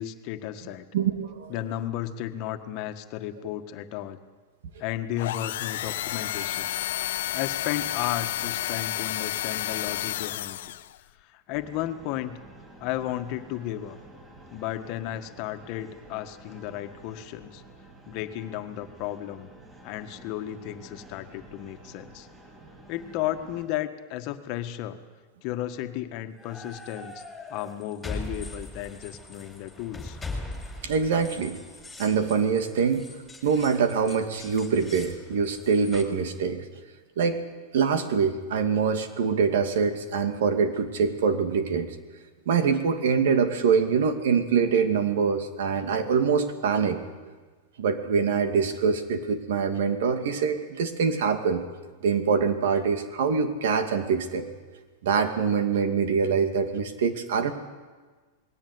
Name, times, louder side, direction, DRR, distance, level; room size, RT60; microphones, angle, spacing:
voice 1, 0.0-0.9 1.5-4.2 4.8-6.7 7.3-10.6 11.2-12.4 12.8-14.0 14.5-17.6 18.1-19.5 19.8-22.3 22.9-25.0 25.4-27.2 27.5-30.2, left 12 dB, 50° left, 8 dB, 1.6 m, -34 dB
voice 2, 0.9-1.5 30.8-31.6 32.0-33.1 33.4-36.6 37.2-37.4 37.7-41.9 42.5-47.0 47.8-51.6 52.0-54.5 55.0-57.5, right 6 dB, 75° right, 8 dB, 2.4 m, -24 dB
sound 1, 5.2-11.0, left 13 dB, 75° left, 0.6 m, -31 dB
sound 2, 11.5-23.6, right 2 dB, 15° right, 7.2 m, -50 dB
sound 3, 26.4-36.0, left 2 dB, 5° left, 4.3 m, -41 dB
20.5 x 17.5 x 9.6 m, 1.4 s
supercardioid pair, 135°, 0 cm